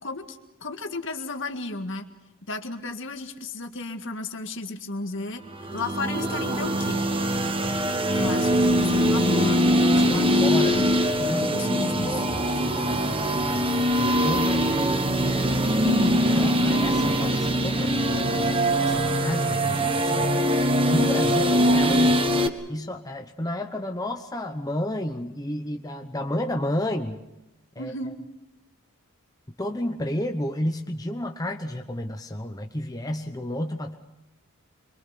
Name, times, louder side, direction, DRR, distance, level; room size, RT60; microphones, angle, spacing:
voice 1, 0.0-2.1 2.5-5.4 5.7-7.0 8.1-9.6 10.0-11.0 11.4-12.2 15.8-16.3 27.8-28.2, left 2 dB, 60° left, 6 dB, 2.0 m, -33 dB
sound 1, 5.6-22.5, equal, 25° right, 1.3 m, -22 dB
voice 2, 9.8-10.8 11.2-15.1 16.3-20.3 20.9-22.3 22.7-27.2 27.8-27.9 29.6-33.9, left 1 dB, 15° left, 4 dB, 1.0 m, -31 dB
25.5 x 24.0 x 6.0 m, 0.92 s
head